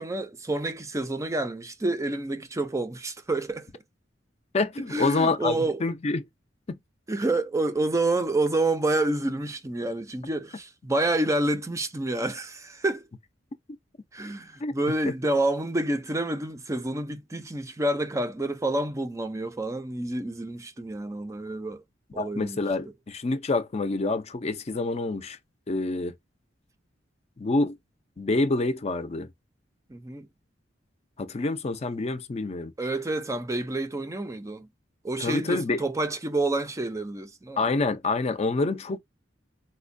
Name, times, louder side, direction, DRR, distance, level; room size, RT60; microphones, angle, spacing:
voice 1, 0.0-3.7 4.9-5.8 7.1-13.1 14.1-21.8 22.1-22.6 29.9-30.3 32.8-34.7 35.0-37.6, right 2 dB, 15° right, 0.4 m, -28 dB
voice 2, 4.5-6.2 6.7-6.8 14.6-14.7 22.2-25.4 25.7-26.1 27.4-27.8 28.2-29.3 31.2-32.7 35.2-35.8 37.6-39.0, left 3 dB, 35° left, 0.5 m, -27 dB
4.2 x 2.1 x 2.5 m
head